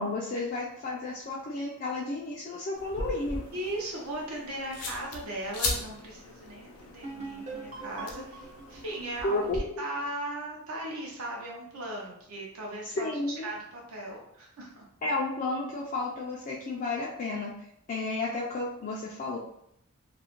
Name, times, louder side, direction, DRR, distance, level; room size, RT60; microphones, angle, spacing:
voice 1, 0.0-3.4 9.2-9.8 13.0-13.5 15.0-17.5 17.9-19.4, left 2 dB, 35° left, -5 dB, 0.3 m, -32 dB
sound 1, 2.7-9.6, left 3 dB, 90° left, 0.6 m, -38 dB
voice 2, 3.5-9.4 9.8-13.1 13.4-14.8, right 1 dB, 70° right, -2 dB, 0.7 m, -38 dB
sound 2, 7.0-10.6, right 3 dB, 30° right, 0.5 m, -43 dB
2.4 x 2.0 x 2.9 m, 0.75 s
head